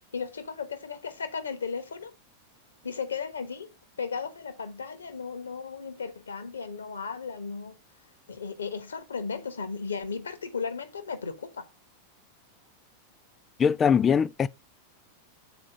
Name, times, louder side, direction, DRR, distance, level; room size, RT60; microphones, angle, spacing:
voice 1, 0.1-2.1 2.8-7.8 8.3-11.7, left 5 dB, 70° left, 1.2 m, -35 dB
voice 2, 13.6-14.5, left 7 dB, 20° left, 0.3 m, -21 dB
7.2 x 4.4 x 5.0 m
figure-of-eight pair, 90°, 0 cm